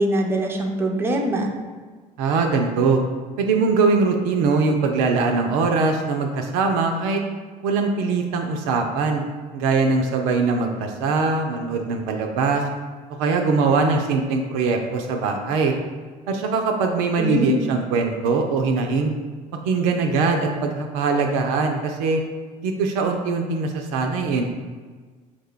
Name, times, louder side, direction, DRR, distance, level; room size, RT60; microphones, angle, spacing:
voice 1, 0.0-1.5 17.2-17.7, right 1 dB, 10° right, 1 dB, 0.5 m, -23 dB
voice 2, 2.2-3.0 3.4-7.2 7.6-9.2 9.5-12.6 13.2-15.7 16.3-19.1 19.6-22.2 22.6-24.4, right 4 dB, 55° right, 3 dB, 0.4 m, -21 dB
4.8 x 2.2 x 3.5 m, 1.4 s
figure-of-eight pair, 60°, 21 cm